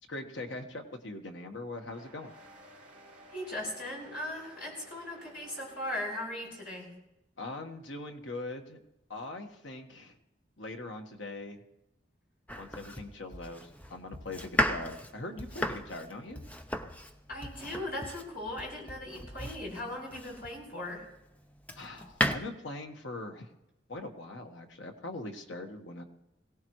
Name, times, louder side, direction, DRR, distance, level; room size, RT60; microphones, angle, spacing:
voice 1, 0.1-2.3 7.4-8.8 9.1-10.1 10.6-11.6 12.6-16.4 21.7-23.5 23.9-26.0, left 2 dB, 80° left, 4 dB, 1.5 m, -41 dB
sound 1, 1.8-6.9, right 1 dB, 10° right, 4.6 m, -55 dB
voice 2, 3.3-6.9 17.3-21.0, left 1 dB, 50° left, -3 dB, 7.8 m, -38 dB
Domestic sounds home sounds, 12.5-20.7 21.2-22.4, equal, 10° left, 0.6 m, -35 dB
22.0 x 17.5 x 3.2 m, 0.89 s
head